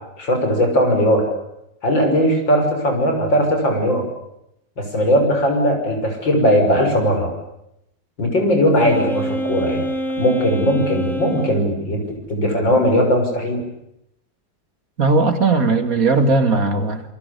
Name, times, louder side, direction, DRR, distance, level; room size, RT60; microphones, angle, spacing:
voice 1, 0.2-1.2 1.8-4.0 4.8-7.3 8.2-9.9 10.2-12.0 12.3-13.6, equal, 85° left, 4 dB, 7.0 m, -18 dB
Wind instrument woodwind instrument, 8.8-11.7, right 1 dB, ahead, 3.1 m, -26 dB
voice 2, 15.0-17.0, right 3 dB, 50° right, 8 dB, 2.7 m, -17 dB
27.5 x 24.0 x 8.5 m, 0.82 s
omnidirectional pair, 2.0 m